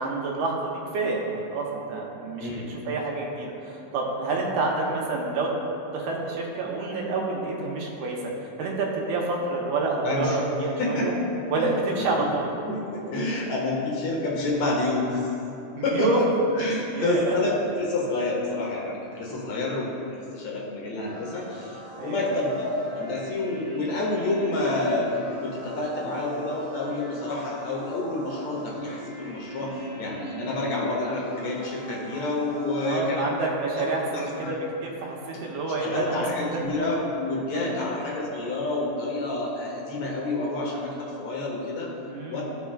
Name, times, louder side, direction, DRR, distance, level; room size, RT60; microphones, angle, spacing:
voice 1, 0.0-5.5 5.9-8.2 8.6-11.1 11.5-12.5 15.8-16.2 16.7-17.4 22.0-22.3 32.8-36.6 37.5-37.8 42.1-42.4, right 3 dB, 80° right, -2 dB, 2.4 m, -28 dB
voice 2, 2.4-2.7 10.0-10.4 10.8-11.1 11.6-12.2 12.6-15.3 15.8-16.2 16.6-25.1 25.4-33.3 33.8-33.9 34.1-34.5 35.8-41.9 42.3-42.4, left 2 dB, 65° left, -3 dB, 2.1 m, -28 dB
sound 1, 21.0-32.9, equal, 25° right, 0.6 m, -41 dB
13.5 x 4.8 x 2.4 m, 2.8 s
omnidirectional pair, 3.5 m